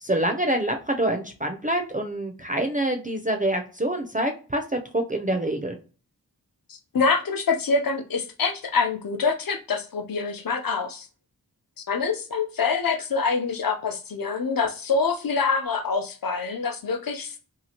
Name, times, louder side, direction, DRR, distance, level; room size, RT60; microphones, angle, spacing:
voice 1, 0.0-5.8, right 1 dB, 20° right, 4 dB, 0.4 m, -26 dB
voice 2, 6.7-11.1 11.9-17.4, left 4 dB, 60° left, 5 dB, 0.6 m, -25 dB
2.8 x 2.4 x 2.8 m, 0.36 s
wide cardioid pair, 50°, 38 cm